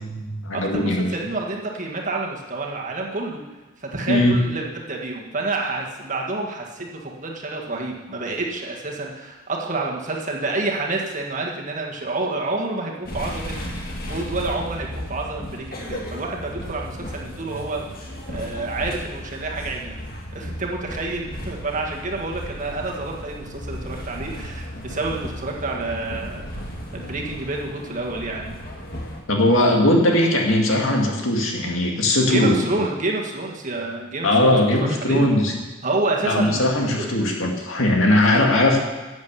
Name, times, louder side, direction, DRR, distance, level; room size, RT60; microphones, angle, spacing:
voice 1, 0.0-1.1 4.1-4.4 29.3-32.9 34.2-35.5 36.2-38.8, left 1 dB, 70° left, 0 dB, 2.2 m, -19 dB
voice 2, 0.5-3.4 3.8-20.0 20.3-26.5 26.9-28.5 32.2-34.6 35.0-35.3 35.8-36.6 36.9-37.2, right 2 dB, 35° right, -1 dB, 1.7 m, -28 dB
sound 1, 13.0-29.2, equal, 45° left, 1.8 m, -35 dB
11.5 x 8.1 x 6.9 m, 1.2 s
head